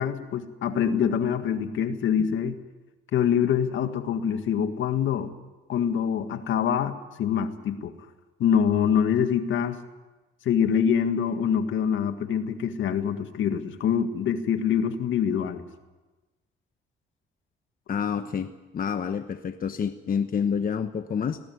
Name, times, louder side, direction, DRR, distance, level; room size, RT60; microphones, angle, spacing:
voice 1, 0.0-2.6 3.1-5.3 5.7-7.9 8.4-9.8 10.4-15.6, left 8 dB, 75° left, 8 dB, 1.9 m, -25 dB
voice 2, 17.9-21.4, left 7 dB, 45° left, 8 dB, 1.1 m, -28 dB
20.0 x 18.0 x 9.6 m, 1.2 s
cardioid pair, 90°, 20 cm